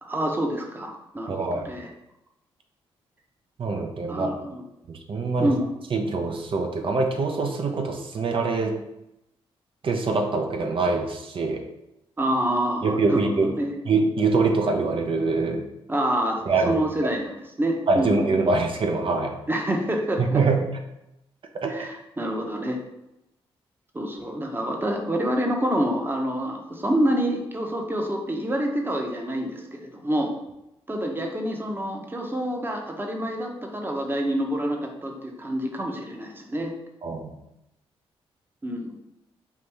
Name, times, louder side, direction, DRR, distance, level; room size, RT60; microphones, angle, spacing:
voice 1, 0.0-1.9 4.1-4.6 5.4-5.6 12.2-13.2 13.6-13.7 15.9-18.5 19.5-20.4 21.7-22.8 23.9-30.3 30.9-36.7 38.6-38.9, right 1 dB, 20° right, 2 dB, 0.9 m, -27 dB
voice 2, 1.3-1.7 3.6-4.3 4.9-5.5 5.9-8.7 9.8-11.6 12.8-13.5 13.9-15.6 16.5-17.1 17.9-19.4 20.2-20.6 21.5-21.9 37.0-37.3, right 3 dB, 55° right, 4 dB, 0.7 m, -24 dB
4.7 x 2.6 x 3.4 m, 0.87 s
cardioid pair, 65°, 11 cm